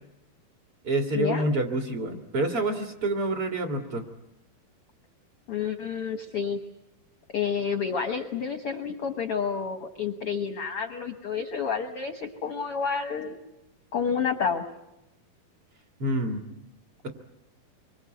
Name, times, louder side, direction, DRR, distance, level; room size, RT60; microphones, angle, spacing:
voice 1, 0.8-4.0 16.0-16.4, right 1 dB, 40° right, 4 dB, 2.6 m, -27 dB
voice 2, 5.5-6.6 7.3-13.4 13.9-14.6, left 6 dB, 60° left, 6 dB, 1.5 m, -29 dB
25.5 x 23.5 x 9.1 m, 0.89 s
omnidirectional pair, 4.3 m